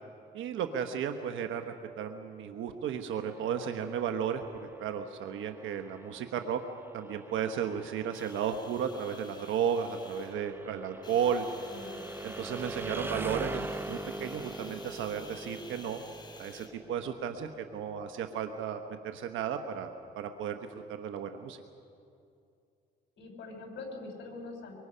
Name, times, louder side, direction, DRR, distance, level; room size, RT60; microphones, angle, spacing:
voice 1, 0.3-1.6 2.0-6.6 6.9-11.5 12.2-16.0 16.4-21.6, right 8 dB, 85° right, 6 dB, 1.1 m, -34 dB
sound 1, 3.1-18.9, right 2 dB, 10° right, 0.7 m, -43 dB
sound 2, 8.1-10.4 11.0-16.7, left 2 dB, 20° left, 3.3 m, -51 dB
voice 2, 11.7-12.0 23.2-24.7, left 3 dB, 65° left, 2 dB, 5.3 m, -43 dB
24.5 x 24.0 x 5.6 m, 2.5 s
cardioid pair, 90°, 20 cm